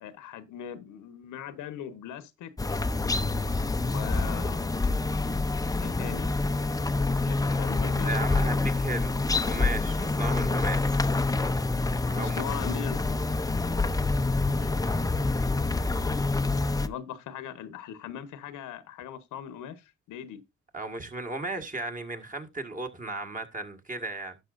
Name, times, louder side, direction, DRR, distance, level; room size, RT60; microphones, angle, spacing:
voice 1, 0.0-2.5 3.8-4.7 5.8-6.3 7.2-8.1 8.4-8.6 12.1-13.4 14.3-14.8 16.8-20.4, left 9 dB, 90° left, 1.2 m, -40 dB
sound 1, 2.6-16.9, left 3 dB, 10° left, 0.6 m, -27 dB
voice 2, 8.0-9.1 9.4-11.0 12.1-12.4 20.7-24.4, right 2 dB, 25° right, 1.9 m, -35 dB
11.5 x 7.3 x 2.6 m
cardioid pair, 90°, 30 cm